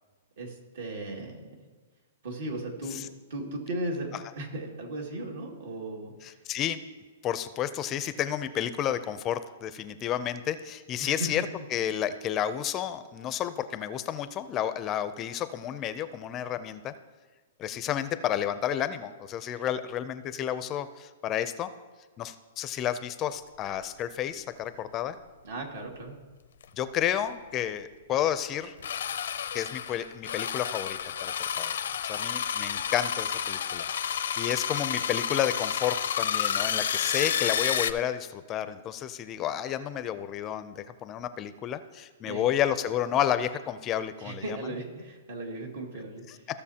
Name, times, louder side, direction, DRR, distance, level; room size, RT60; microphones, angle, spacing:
voice 1, 0.4-1.4 2.2-3.0 3.3-4.1 4.4-6.1 11.0-11.3 25.4-26.1 42.3-42.4 44.2-46.4, right 1 dB, 70° right, 0 dB, 2.2 m, -36 dB
voice 2, 6.2-6.8 7.2-11.4 11.7-16.9 17.6-21.7 22.2-25.2 26.8-28.7 29.5-31.7 32.0-33.9 34.1-44.6 46.3-46.4, left 10 dB, 25° left, 12 dB, 0.4 m, -31 dB
sound 1, 26.6-26.7 27.1-27.2 28.8-37.9, left 8 dB, 80° left, 0.5 m, -30 dB
15.5 x 6.8 x 2.8 m, 1.4 s
hypercardioid pair, 145°, 0 cm